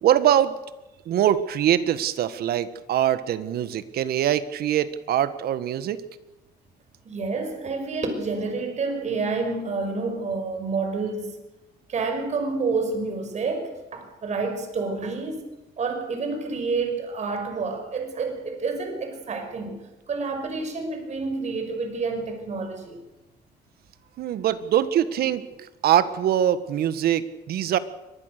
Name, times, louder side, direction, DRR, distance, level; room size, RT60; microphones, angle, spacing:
voice 1, 0.0-0.6 1.0-6.0 24.2-27.8, right 11 dB, 65° right, 13 dB, 1.6 m, -23 dB
voice 2, 7.1-11.4 11.9-15.5 15.8-23.0, right 4 dB, 45° right, 6 dB, 5.6 m, -29 dB
24.0 x 19.5 x 6.8 m, 1.0 s
cardioid pair, 110°, 17 cm